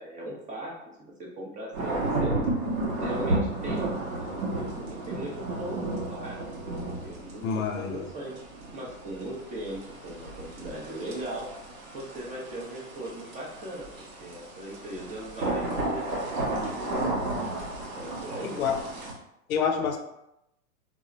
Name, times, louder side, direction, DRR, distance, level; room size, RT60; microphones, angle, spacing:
voice 1, 0.0-2.3 3.0-8.3 8.7-11.5 11.9-17.2 17.8-18.6, right 1 dB, 20° right, -2 dB, 0.5 m, -39 dB
sound 1, 1.7-19.1, right 2 dB, 90° right, 1.0 m, -33 dB
voice 2, 7.4-8.1 18.6-18.8 19.5-20.0, left 6 dB, 80° left, 6 dB, 0.6 m, -27 dB
2.4 x 2.1 x 3.7 m, 0.84 s
hypercardioid pair, 125°, 41 cm